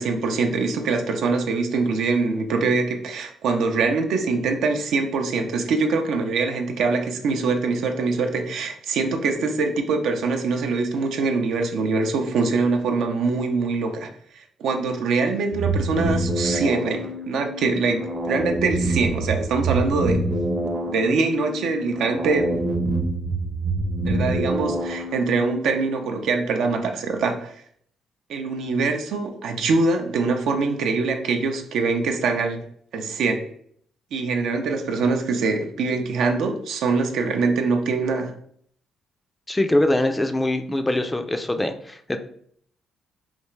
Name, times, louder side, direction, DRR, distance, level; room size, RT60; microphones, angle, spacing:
voice 1, 0.0-14.1 14.3-20.3 20.9-22.6 24.1-27.5 28.3-32.6 32.9-33.5 34.1-38.3, right 4 dB, 75° right, 4 dB, 0.5 m, -23 dB
sound 1, 15.5-25.5, right 2 dB, 35° right, 0.7 m, -26 dB
voice 2, 39.5-42.2, left 1 dB, 15° left, 7 dB, 0.4 m, -23 dB
3.4 x 2.4 x 3.1 m, 0.63 s
cardioid pair, 80°, 0 cm